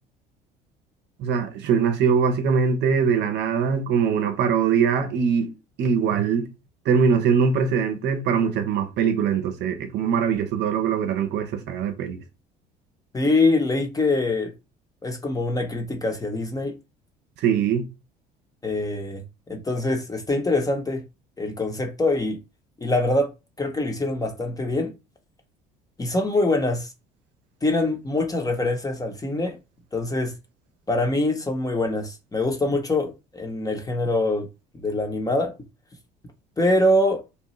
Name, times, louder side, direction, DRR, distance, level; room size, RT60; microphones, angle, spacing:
voice 1, 1.2-5.5 5.8-6.5 6.9-12.2 17.4-17.8, right 6 dB, 60° right, 0.7 m, -22 dB
voice 2, 13.1-14.5 15.0-16.7 18.6-19.2 19.5-21.0 21.4-22.4 22.8-23.3 23.6-24.9 26.0-26.9 27.6-29.6 29.9-30.3 30.9-34.5 34.7-35.5 36.6-37.2, left 2 dB, 15° left, 0.8 m, -24 dB
2.9 x 2.3 x 2.9 m
hypercardioid pair, 65°, 20 cm